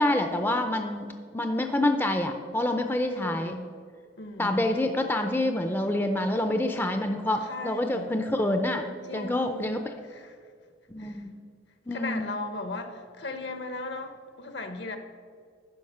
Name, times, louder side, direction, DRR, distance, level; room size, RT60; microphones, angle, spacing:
voice 1, 0.0-3.5 4.4-8.9 9.1-9.8 10.9-11.3 11.9-12.3, left 1 dB, 10° left, 6 dB, 0.4 m, -27 dB
voice 2, 3.1-3.7 4.2-4.8 7.4-8.1 9.0-9.7 10.0-10.5 11.0-11.3 11.9-15.0, left 2 dB, 65° left, 8 dB, 0.9 m, -37 dB
11.5 x 5.1 x 5.5 m, 2.1 s
head